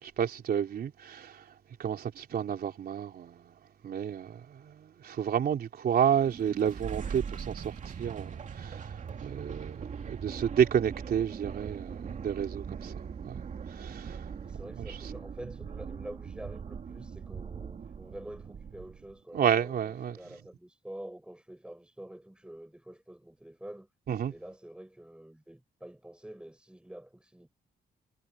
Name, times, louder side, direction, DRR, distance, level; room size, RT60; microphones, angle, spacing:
voice 1, 0.0-1.3 1.8-3.5 3.8-8.9 9.2-13.4 13.7-14.2 14.9-15.0 19.3-20.2 24.1-24.3, right 8 dB, 65° right, 3.5 m, -30 dB
sound 1, 6.1-19.2, right 6 dB, 50° right, 2.7 m, -41 dB
voice 2, 14.4-23.9 24.3-27.5, right 1 dB, 5° right, 6.5 m, -47 dB
wide cardioid pair, 140°, 17 cm